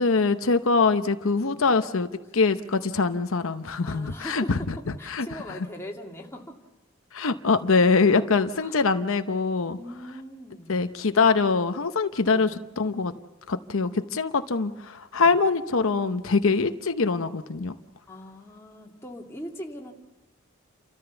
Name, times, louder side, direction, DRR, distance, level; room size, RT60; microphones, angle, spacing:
voice 1, 0.0-2.1 2.3-4.6 5.1-5.3 7.1-9.8 10.7-13.1 13.5-17.7, left 4 dB, 70° left, 9 dB, 0.8 m, -23 dB
voice 2, 3.8-6.6 7.2-7.4 8.6-8.8 9.7-10.8 12.3-12.5 15.2-15.3 18.1-19.9, equal, 10° left, 0 dB, 2.3 m, -41 dB
30.0 x 14.0 x 7.0 m, 1.1 s
head